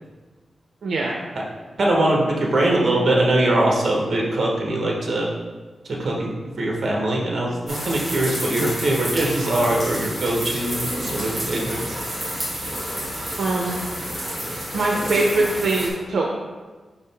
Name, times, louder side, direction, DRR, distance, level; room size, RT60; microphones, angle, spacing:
voice 1, 0.8-1.2 13.4-13.8 14.7-16.4, right 2 dB, 80° right, -1 dB, 0.6 m, -22 dB
voice 2, 1.8-5.3 5.9-6.3 6.6-12.0, right 1 dB, 55° right, -2 dB, 1.1 m, -22 dB
sound 1, 7.7-15.9, equal, 10° right, 1.9 m, -29 dB
5.3 x 5.1 x 3.4 m, 1.3 s
wide cardioid pair, 160°, 0 cm